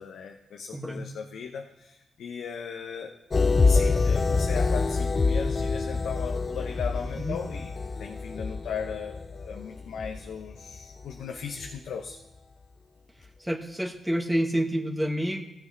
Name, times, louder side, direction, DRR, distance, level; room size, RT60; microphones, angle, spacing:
voice 1, 0.0-3.1 3.6-7.7 8.0-12.2, left 6 dB, 75° left, 3 dB, 0.8 m, -37 dB
voice 2, 0.7-1.1 7.2-7.4 13.4-15.4, equal, 5° right, -1 dB, 1.7 m, -28 dB
sound 1, 3.3-11.2 11.6-11.8, left 4 dB, 40° left, 0.5 m, -26 dB
15.0 x 7.0 x 3.2 m, 0.97 s
supercardioid pair, 50°, 0 cm